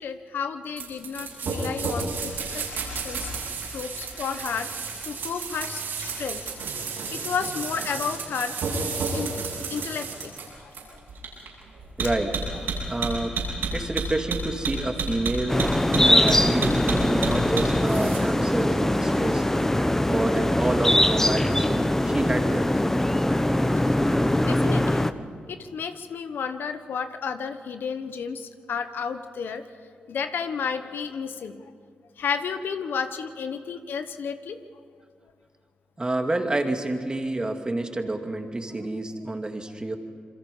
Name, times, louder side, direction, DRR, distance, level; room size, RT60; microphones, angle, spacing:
voice 1, 0.0-3.3 3.7-4.7 5.0-6.4 7.1-8.6 9.1-9.3 9.7-10.3 10.6-11.0 23.8-24.1 24.4-25.1 25.5-29.6 30.1-31.6 32.2-34.6, left 6 dB, 75° left, 9 dB, 1.1 m, -32 dB
sound 1, 0.8-18.2, right 4 dB, 80° right, 7.4 m, -31 dB
voice 2, 12.0-12.3 12.9-13.4 13.7-15.6 16.0-19.4 20.1-22.9 36.0-40.0, right 2 dB, 25° right, 4 dB, 2.5 m, -28 dB
sound 2, 15.5-25.1, left 1 dB, 10° left, 1.0 m, -22 dB
27.0 x 22.5 x 5.5 m, 2.2 s
supercardioid pair, 55°, 4 cm